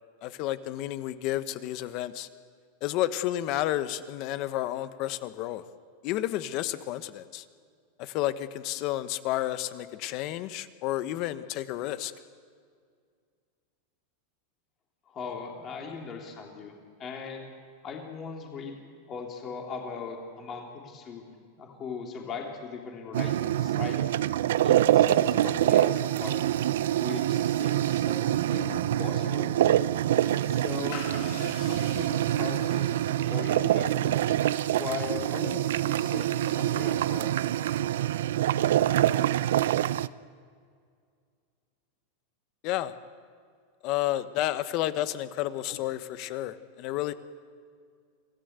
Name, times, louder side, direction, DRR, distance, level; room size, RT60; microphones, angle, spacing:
voice 1, 0.2-2.3 2.8-5.6 6.0-7.4 8.0-12.1 42.6-42.9 43.8-47.1, left 14 dB, 45° left, 13 dB, 1.0 m, -31 dB
voice 2, 15.1-17.4 17.8-18.7 19.1-21.2 21.6-24.0 24.6-26.4 27.0-29.5 30.4-34.2 34.7-37.4, left 5 dB, 25° left, 1 dB, 3.1 m, -39 dB
sound 1, 23.1-40.1, right 12 dB, 80° right, 0.5 m, -25 dB
sound 2, 30.2-36.8, left 5 dB, 65° left, 5.8 m, -48 dB
26.0 x 17.0 x 8.1 m, 2.1 s
supercardioid pair, 155°, 0 cm